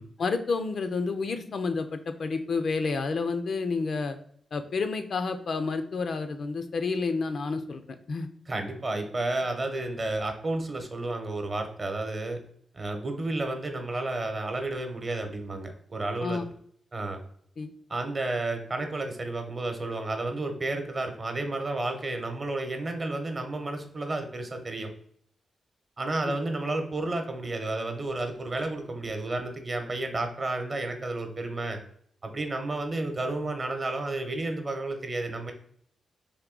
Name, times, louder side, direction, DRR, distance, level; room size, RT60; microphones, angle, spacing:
voice 1, 0.2-4.2 4.5-7.8 8.1-8.3 16.2-16.5 17.6-17.7 26.3-26.4, left 4 dB, 65° left, 8 dB, 0.4 m, -30 dB
voice 2, 8.5-12.4 12.7-16.4 16.9-17.2 17.9-24.9 26.0-31.8 32.2-35.5, right 2 dB, 40° right, 5 dB, 0.8 m, -31 dB
3.5 x 2.7 x 3.7 m, 0.63 s
cardioid pair, 75°, 0 cm